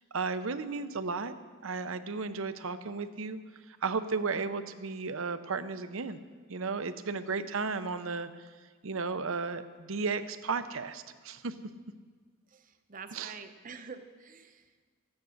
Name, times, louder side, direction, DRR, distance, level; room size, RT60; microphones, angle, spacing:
voice 1, 0.1-1.3 1.6-3.4 3.8-6.2 6.5-8.3 8.8-11.5 13.1-13.3, right 4 dB, 70° right, 11 dB, 0.7 m, -34 dB
voice 2, 12.5-14.9, right 5 dB, 40° right, 8 dB, 0.8 m, -47 dB
14.0 x 9.3 x 6.5 m, 1.5 s
head